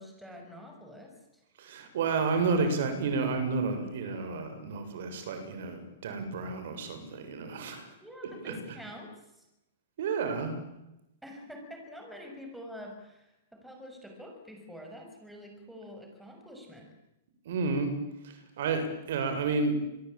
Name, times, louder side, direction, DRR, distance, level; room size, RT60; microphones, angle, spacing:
voice 1, 0.0-1.4 8.0-9.1 9.4-9.5 11.2-16.9, equal, 5° right, 2 dB, 6.6 m, -46 dB
voice 2, 1.6-7.9 8.2-8.5 10.0-10.5 17.5-17.9 18.2-19.8, right 4 dB, 60° right, 7 dB, 7.3 m, -31 dB
27.0 x 22.5 x 9.0 m, 0.90 s
hypercardioid pair, 155°, 0 cm